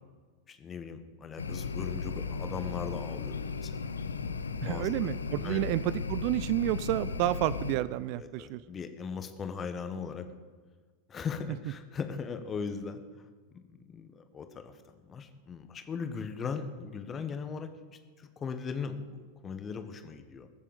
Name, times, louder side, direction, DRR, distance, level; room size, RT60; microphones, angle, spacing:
voice 1, 0.5-3.7 4.5-4.9 5.4-5.7 8.1-10.3 11.1-13.3 13.5-14.8 15.0-17.7 18.2-20.5, left 6 dB, 25° left, 8 dB, 1.4 m, -39 dB
sound 1, 1.4-7.8, left 5 dB, 75° left, 0.7 m, -36 dB
voice 2, 4.6-8.6, right 16 dB, 45° right, 17 dB, 0.4 m, -30 dB
21.0 x 7.5 x 5.4 m, 1.5 s
figure-of-eight pair, 90°, 0 cm